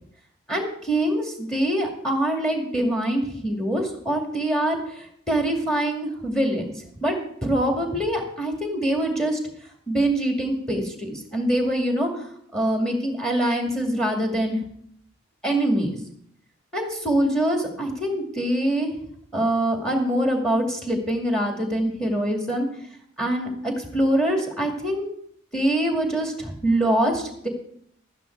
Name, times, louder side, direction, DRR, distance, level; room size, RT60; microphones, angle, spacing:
voice 1, 0.5-6.6 7.0-9.4 9.9-14.6 15.4-16.0 16.7-18.9 19.3-22.7 23.2-25.1 25.5-27.5, right 1 dB, 5° left, 2 dB, 2.2 m, -24 dB
12.5 x 9.7 x 4.6 m, 0.67 s
head